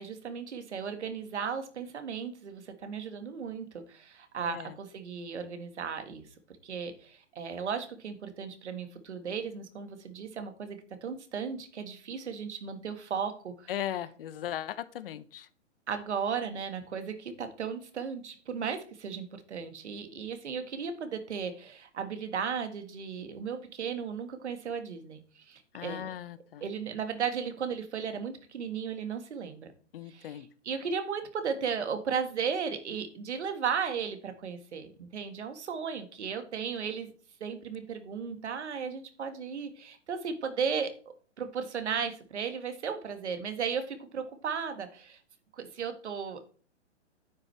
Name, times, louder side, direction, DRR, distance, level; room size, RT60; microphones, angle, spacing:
voice 1, 0.0-6.3 6.6-13.7 15.9-26.1 26.6-29.7 30.1-37.1 37.4-40.9 41.4-45.2 45.5-46.4, right 6 dB, 70° right, 8 dB, 1.7 m, -35 dB
voice 2, 4.4-4.8 13.7-15.5 25.7-26.6 29.9-30.5, left 11 dB, 50° left, 15 dB, 0.8 m, -38 dB
9.4 x 8.8 x 3.3 m, 0.43 s
hypercardioid pair, 125°, 36 cm